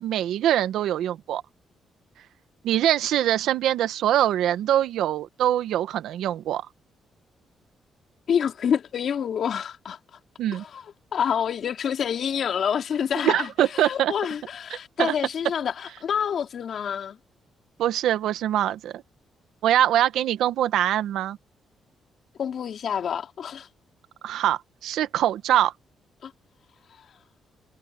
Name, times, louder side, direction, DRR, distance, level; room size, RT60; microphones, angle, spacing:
voice 1, 0.0-1.4 2.6-6.7 10.4-10.6 13.2-14.1 15.0-15.1 17.8-19.0 19.6-21.4 24.2-25.7, right 11 dB, 85° right, 1.1 m, -23 dB
voice 2, 8.3-10.0 10.5-10.8 11.1-17.2 22.4-23.7 26.2-26.3, left 8 dB, 60° left, 2.8 m, -27 dB
cardioid pair, 115°, 0 cm